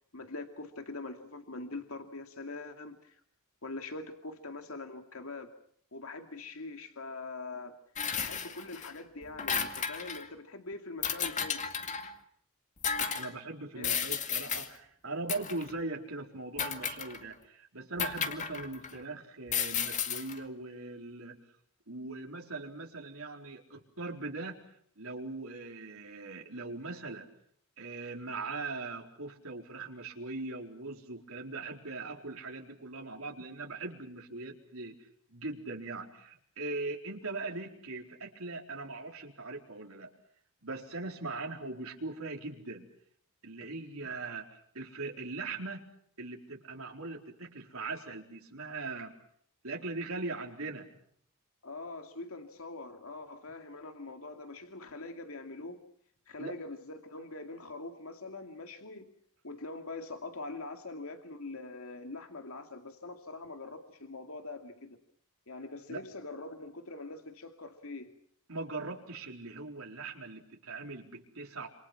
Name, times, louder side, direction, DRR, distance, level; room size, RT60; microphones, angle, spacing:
voice 1, 0.1-3.2 3.6-5.5 5.9-7.7 8.2-11.6 13.7-14.0 51.6-55.9 56.3-59.1 59.4-65.0 65.5-68.1, left 3 dB, 75° left, 5 dB, 2.4 m, -43 dB
sound 1, 8.0-8.9 9.2-10.3 11.0-12.1 12.8-13.3 13.8-14.7 15.3-15.7 16.6-17.3 18.0-19.0 19.5-20.4, left 7 dB, 35° left, 2.2 m, -33 dB
voice 2, 13.1-21.4 21.9-24.6 25.0-27.3 27.8-35.0 35.3-40.1 40.6-42.9 43.4-45.8 46.2-49.1 49.6-50.9 56.4-56.5 65.9-66.0 68.5-71.7, right 3 dB, 75° right, 1 dB, 4.3 m, -40 dB
27.5 x 27.5 x 6.0 m, 0.65 s
head